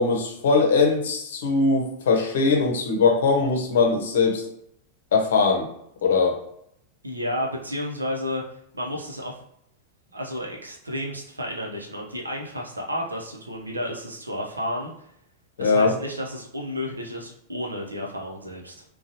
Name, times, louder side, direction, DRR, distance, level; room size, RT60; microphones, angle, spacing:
voice 1, 0.0-4.4 5.1-5.6 6.0-6.4 15.6-15.9, left 4 dB, 60° left, 1 dB, 0.7 m, -21 dB
voice 2, 7.0-9.4 10.1-15.1 15.6-18.8, equal, 80° right, -1 dB, 0.7 m, -32 dB
3.7 x 2.3 x 2.7 m, 0.72 s
figure-of-eight pair, 90°, 0 cm